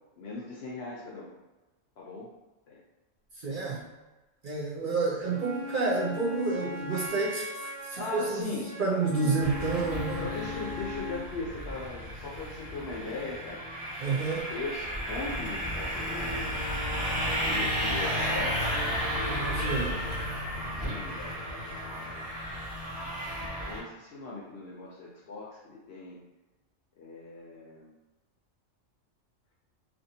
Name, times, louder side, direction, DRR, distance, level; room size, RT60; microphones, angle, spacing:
voice 1, 0.2-1.3 2.0-2.3 2.7-2.8 8.0-8.8 9.2-9.4 10.2-13.6 14.1-16.6 17.3-18.7 19.1-19.7 20.8-22.3 23.3-26.2 27.0-28.0, left 3 dB, 65° left, -4 dB, 0.7 m, -39 dB
voice 2, 3.4-3.8 4.4-8.5 8.8-10.3 14.0-14.5 19.5-20.0, right 4 dB, 65° right, -4 dB, 0.5 m, -29 dB
Wind instrument woodwind instrument, 5.2-11.2, left 3 dB, 50° right, 1.1 m, -39 dB
sound 1, 9.4-23.8, equal, 5° right, 1.3 m, -33 dB
2.6 x 2.6 x 2.7 m, 1.1 s
omnidirectional pair, 1.4 m